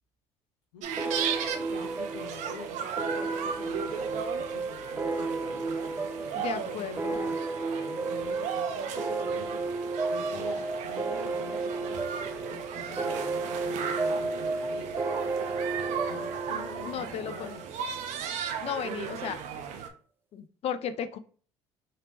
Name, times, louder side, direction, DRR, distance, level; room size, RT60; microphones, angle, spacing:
sound 1, 0.8-19.9, right 7 dB, 65° right, 0.6 m, -36 dB
sound 2, 1.0-18.1, right 3 dB, 15° right, 0.3 m, -33 dB
voice 1, 1.5-15.1 16.0-17.8, left 5 dB, 85° left, -2 dB, 0.8 m, -47 dB
voice 2, 6.3-7.2 16.9-17.5 18.6-19.4 20.3-21.2, left 8 dB, 50° left, 12 dB, 0.5 m, -34 dB
3.3 x 2.9 x 2.8 m, 0.43 s
supercardioid pair, 80°, 13 cm